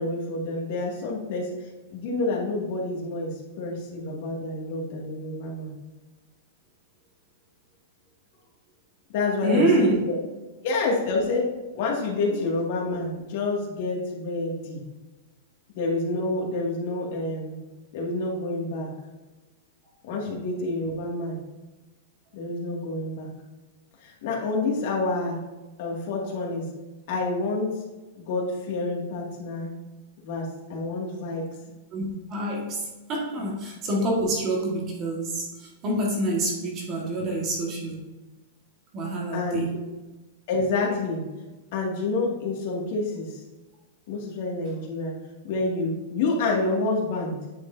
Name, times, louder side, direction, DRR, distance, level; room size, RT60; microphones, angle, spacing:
voice 1, 0.0-5.7 9.1-10.1 10.6-11.5 11.7-14.8 15.7-17.6 17.9-18.9 20.1-21.4 22.3-23.3 24.0-25.4 25.8-26.7 27.1-27.8 28.2-29.7 30.2-31.4 33.4-33.5 39.3-39.6 40.5-41.2 41.7-43.4 44.1-45.1 45.4-47.4, left 2 dB, 45° left, -2 dB, 2.2 m, -28 dB
voice 2, 9.4-10.0 12.3-12.4 31.9-32.8 33.1-38.0 38.9-39.8, right 1 dB, 25° right, -1 dB, 1.7 m, -26 dB
8.8 x 6.5 x 2.7 m, 1.2 s
supercardioid pair, 170°, 0 cm